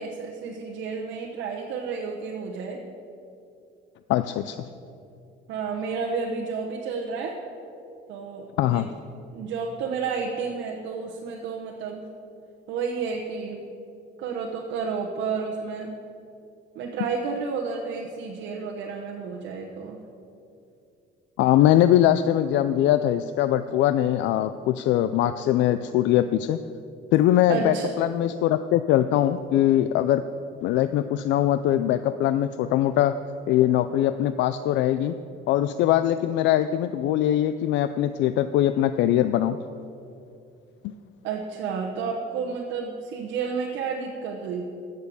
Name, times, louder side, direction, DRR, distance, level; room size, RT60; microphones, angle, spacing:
voice 1, 0.0-2.8 5.5-7.4 8.1-8.9 9.3-12.1 12.7-13.6 14.2-15.9 16.7-20.0 27.5-27.9 41.2-44.6, right 5 dB, 70° right, -1 dB, 1.1 m, -31 dB
voice 2, 4.1-4.6 8.6-8.9 21.4-26.6 27.1-30.2 30.6-33.2 33.5-35.1 35.5-39.6 40.8-40.9, left 12 dB, 70° left, 12 dB, 0.4 m, -22 dB
14.5 x 6.7 x 7.0 m, 2.6 s
cardioid pair, 180°, 20 cm